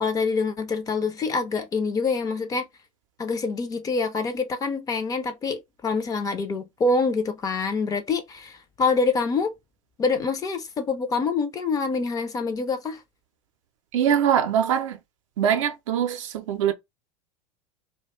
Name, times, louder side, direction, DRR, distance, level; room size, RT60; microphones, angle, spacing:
voice 1, 0.0-2.6 3.2-9.5 10.0-13.0, left 4 dB, 20° left, 0.5 m, -26 dB
voice 2, 13.9-15.0 15.4-16.7, right 9 dB, 60° right, 0.5 m, -22 dB
2.3 x 2.1 x 3.1 m
figure-of-eight pair, 85°, 19 cm